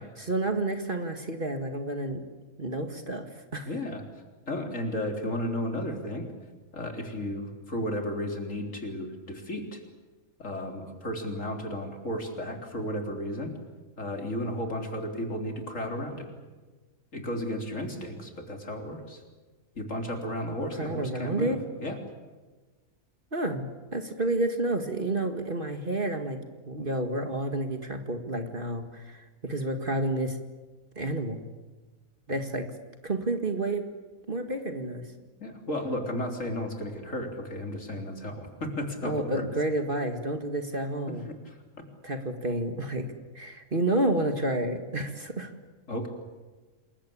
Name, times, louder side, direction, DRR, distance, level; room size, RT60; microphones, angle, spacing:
voice 1, 0.2-2.2 2.6-3.7 20.8-21.6 23.3-30.4 31.0-31.5 32.3-32.7 33.0-33.9 34.3-35.0 39.0-41.3 42.0-43.1 43.3-45.5, right 2 dB, 35° right, 6 dB, 2.1 m, -30 dB
voice 2, 3.7-4.0 4.5-6.3 6.7-9.8 10.4-13.5 14.0-16.3 17.1-19.2 19.8-21.6 21.8-22.0 35.4-39.4 41.1-41.6 45.9-46.1, left 1 dB, 60° left, 3 dB, 4.1 m, -33 dB
27.5 x 22.0 x 8.6 m, 1.3 s
omnidirectional pair, 1.5 m